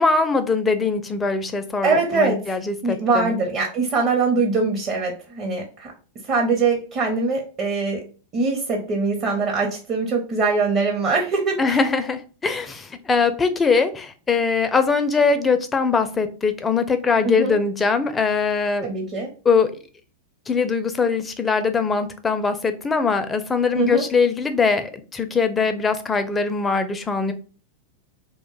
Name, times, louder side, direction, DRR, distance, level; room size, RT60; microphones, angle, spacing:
voice 1, 0.0-3.3 11.6-18.9 19.4-19.7 20.5-27.3, left 4 dB, 15° left, 0.4 m, -21 dB
voice 2, 1.8-2.6 2.8-5.9 6.3-8.0 8.3-11.8 17.2-17.6 18.8-19.3 23.7-24.0, right 4 dB, 35° right, 0.8 m, -22 dB
2.4 x 2.2 x 3.8 m
figure-of-eight pair, 95°, 0 cm